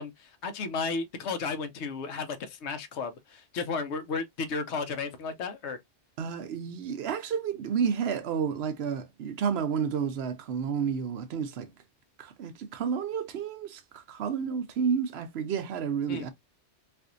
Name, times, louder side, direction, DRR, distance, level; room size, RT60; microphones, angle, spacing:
voice 1, 0.0-5.8 16.1-16.3, left 4 dB, 75° left, 0.9 m, -33 dB
voice 2, 6.2-11.7 12.2-16.3, right 7 dB, 65° right, 0.8 m, -31 dB
4.2 x 2.5 x 2.5 m
omnidirectional pair, 1.2 m